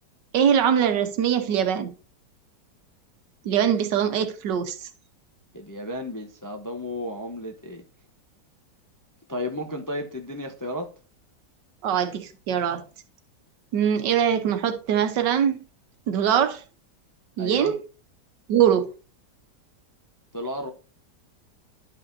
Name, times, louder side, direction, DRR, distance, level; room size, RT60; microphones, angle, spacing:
voice 1, 0.3-1.9 3.5-4.9 11.8-12.8 13.7-15.6 16.1-16.6 17.4-17.8 18.5-18.9, right 9 dB, 80° right, 1.6 m, -22 dB
voice 2, 5.5-7.8 9.3-10.9 17.4-17.7 20.3-20.7, left 1 dB, 20° left, 0.5 m, -33 dB
11.5 x 5.7 x 2.6 m
omnidirectional pair, 1.9 m